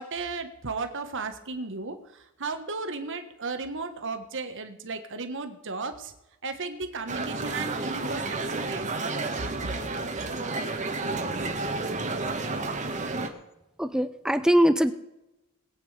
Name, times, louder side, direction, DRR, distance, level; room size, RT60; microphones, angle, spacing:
voice 1, 0.0-6.1 6.4-9.7, right 3 dB, 60° right, 8 dB, 1.4 m, -35 dB
sound 1, 7.1-13.3, right 3 dB, 35° right, 1.3 m, -31 dB
voice 2, 13.8-14.9, equal, 5° right, 11 dB, 0.5 m, -22 dB
21.0 x 8.7 x 5.0 m, 0.92 s
head